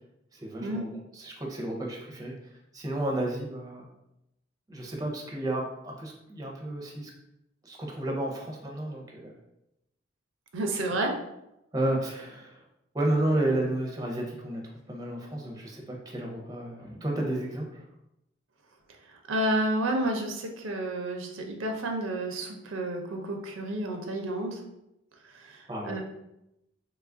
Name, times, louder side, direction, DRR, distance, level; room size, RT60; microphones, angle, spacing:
voice 1, 0.3-2.3 2.7-3.9 4.7-7.1 7.6-9.3 11.7-12.6 12.9-17.8 25.7-26.0, right 1 dB, 20° right, 0 dB, 0.6 m, -32 dB
voice 2, 10.5-11.2 19.1-24.6 25.3-26.0, right 1 dB, 85° right, 3 dB, 0.5 m, -30 dB
2.9 x 2.3 x 3.7 m, 0.85 s
head